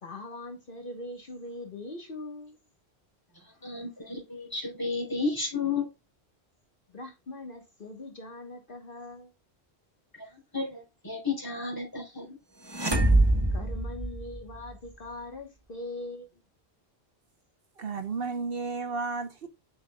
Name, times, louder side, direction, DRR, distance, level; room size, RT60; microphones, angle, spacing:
voice 1, 0.0-2.6 6.9-9.3 13.5-16.4, left 2 dB, 55° left, 1.4 m, -41 dB
voice 2, 3.6-5.9 10.2-12.4, left 4 dB, 20° left, 3.8 m, -32 dB
sound 1, 12.7-14.7, right 2 dB, 25° right, 1.2 m, -24 dB
voice 3, 17.8-19.5, right 4 dB, 65° right, 1.1 m, -33 dB
7.9 x 6.2 x 2.2 m
omnidirectional pair, 1.1 m